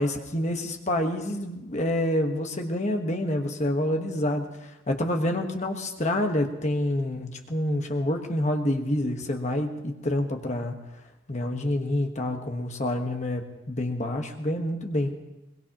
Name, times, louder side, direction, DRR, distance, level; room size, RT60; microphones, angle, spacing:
voice 1, 0.0-10.7 11.3-15.1, left 1 dB, 35° left, 3 dB, 1.3 m, -27 dB
22.0 x 22.0 x 3.0 m, 0.98 s
head